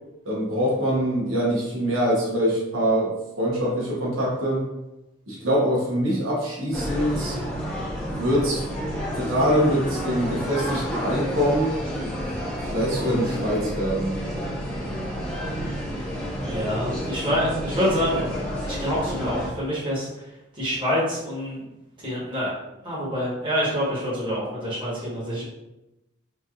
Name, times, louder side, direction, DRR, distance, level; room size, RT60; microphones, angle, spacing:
voice 1, 0.2-4.6 5.3-7.4 8.1-8.6 9.1-11.7 12.6-14.1, equal, 85° right, -4 dB, 1.0 m, -24 dB
sound 1, 6.7-19.5, equal, 5° left, 0.8 m, -30 dB
voice 2, 16.4-18.3 18.6-20.2 20.6-21.6 22.0-22.5 22.8-25.4, equal, 25° right, -8 dB, 1.1 m, -26 dB
3.2 x 2.6 x 2.4 m, 0.93 s
head